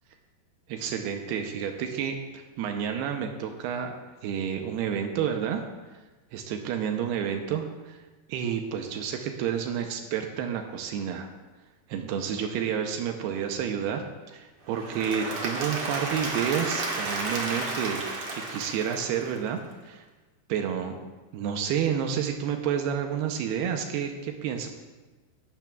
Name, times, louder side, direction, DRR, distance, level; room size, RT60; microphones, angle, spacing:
voice 1, 0.7-4.0 4.2-5.6 6.3-8.0 8.3-11.3 11.9-18.1 18.3-19.6 19.9-20.1 20.5-21.0 21.3-24.7, right 8 dB, 80° right, 5 dB, 2.7 m, -30 dB
Applause / Crowd, 14.7-19.6, right 2 dB, 55° right, 1.8 m, -32 dB
17.5 x 12.0 x 2.3 m, 1.2 s
omnidirectional pair, 4.7 m